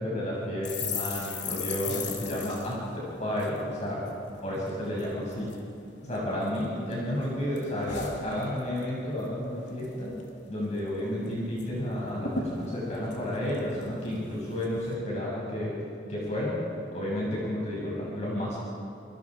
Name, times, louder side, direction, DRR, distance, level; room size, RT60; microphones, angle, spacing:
voice 1, 0.0-4.0 4.4-5.5 6.0-10.1 10.5-15.7 16.1-16.5 16.9-18.6, left 1 dB, 35° left, -6 dB, 7.5 m, -31 dB
sound 1, 0.6-4.2 4.5-4.7 5.0-5.6 6.1-6.9 7.2-8.9 9.2-9.4 9.7-10.3 10.6-10.7 11.0-11.7 11.9-12.0 12.2-14.1 14.6-14.9, left 5 dB, 80° left, 3.1 m, -38 dB
28.5 x 27.0 x 5.1 m, 2.4 s
head